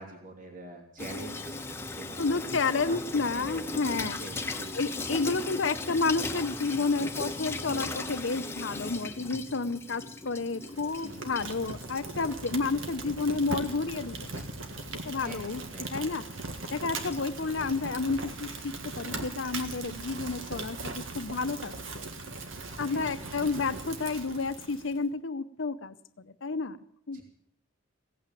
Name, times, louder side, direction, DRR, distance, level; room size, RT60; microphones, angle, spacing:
voice 1, 0.0-3.0 3.3-3.7 3.9-5.0 11.0-11.4 15.2-16.2 17.5-17.6 22.9-23.7 27.1-27.2, right 1 dB, 40° right, 1 dB, 2.9 m, -46 dB
Water tap faucet / Sink (filling or washing), 1.0-18.5, left 3 dB, 10° left, 1.1 m, -39 dB
voice 2, 2.2-4.2 4.7-14.4 15.0-16.2 16.7-22.1 22.8-26.8 27.1-27.2, left 4 dB, 65° left, 11 dB, 0.7 m, -31 dB
Fire, 10.6-25.0, right 2 dB, 70° right, 1.8 m, -39 dB
17.0 x 9.1 x 9.1 m, 0.73 s
head